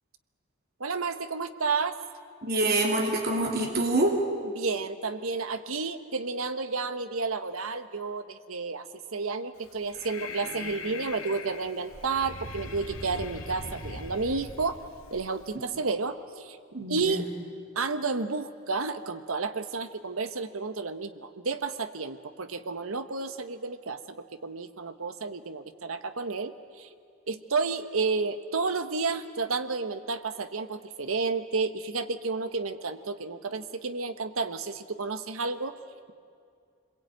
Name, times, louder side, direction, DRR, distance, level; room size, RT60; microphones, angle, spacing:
voice 1, 0.8-2.0 4.4-8.9 9.1-14.8 15.1-16.6 16.9-17.3 17.7-26.9 27.3-35.8, right 4 dB, 75° right, 10 dB, 1.2 m, -31 dB
voice 2, 2.4-4.2 16.7-17.2, right 2 dB, 50° right, 1 dB, 2.9 m, -26 dB
Breathing, 9.6-15.5, left 3 dB, 75° left, 2.4 m, -41 dB
27.0 x 21.5 x 9.1 m, 2.3 s
head